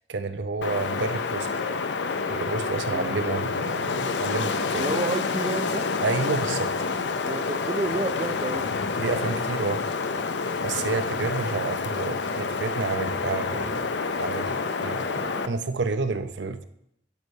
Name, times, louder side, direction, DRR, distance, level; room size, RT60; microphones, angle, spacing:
voice 1, 0.1-1.5 2.3-5.0 6.0-6.7 9.0-9.8 10.6-13.9 14.2-16.6, right 4 dB, 70° right, 11 dB, 0.7 m, -30 dB
Wind, 0.6-15.5, left 4 dB, 70° left, 0.6 m, -28 dB
voice 2, 2.9-3.2 4.8-5.8 7.2-8.7, right 2 dB, 25° right, 7 dB, 0.5 m, -30 dB
9.4 x 6.5 x 5.4 m, 0.73 s
head